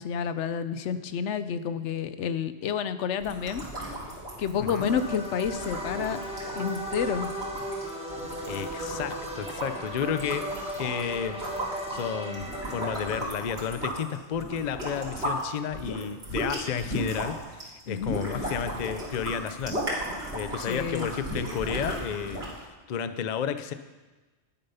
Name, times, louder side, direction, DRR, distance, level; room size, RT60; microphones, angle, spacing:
voice 1, 0.0-3.7 4.4-6.2 6.5-7.3 17.9-18.2 20.7-21.1, left 7 dB, 80° left, 12 dB, 1.0 m, -29 dB
sound 1, 3.2-15.4 15.7-22.6, right 1 dB, 60° right, 3.4 m, -35 dB
voice 2, 4.6-4.9 8.4-10.4 10.8-11.4 11.9-19.8 20.3-23.7, left 8 dB, 50° left, 11 dB, 0.6 m, -32 dB
sound 2, 4.8-13.2, equal, 5° right, 1.6 m, -36 dB
11.0 x 9.0 x 5.6 m, 1.2 s
omnidirectional pair, 1.2 m